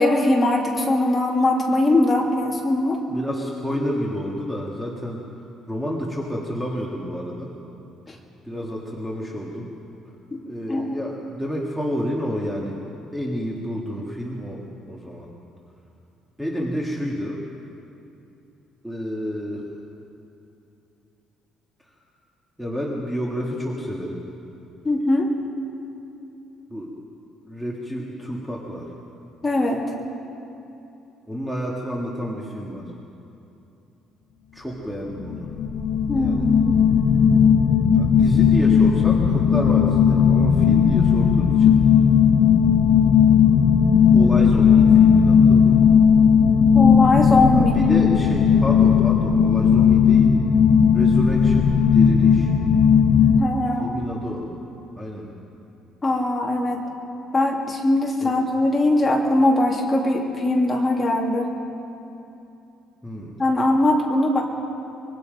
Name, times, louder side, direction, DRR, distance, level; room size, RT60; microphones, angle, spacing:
voice 1, 0.0-3.0 10.3-10.4 10.7-11.0 24.8-25.3 29.4-29.8 36.1-36.8 46.7-47.8 53.4-54.0 56.0-56.8 57.3-61.5 63.4-64.4, left 2 dB, 15° left, -2 dB, 2.5 m, -21 dB
voice 2, 3.1-5.2 5.7-7.5 8.4-9.7 10.5-12.8 13.1-15.3 16.4-17.4 18.8-19.7 21.8-21.9 22.6-24.2 26.7-26.9 27.4-29.0 31.3-32.9 34.5-35.5 36.1-36.5 37.9-41.8 44.1-45.8 47.5-50.3 50.9-52.5 53.8-54.5 55.0-55.3 58.2-58.3 63.0-63.4, equal, ahead, -3 dB, 1.8 m, -29 dB
sound 1, 35.2-53.4, left 7 dB, 55° left, 0.9 m, -16 dB
25.0 x 22.5 x 5.3 m, 2.8 s
cardioid pair, 165°, 0 cm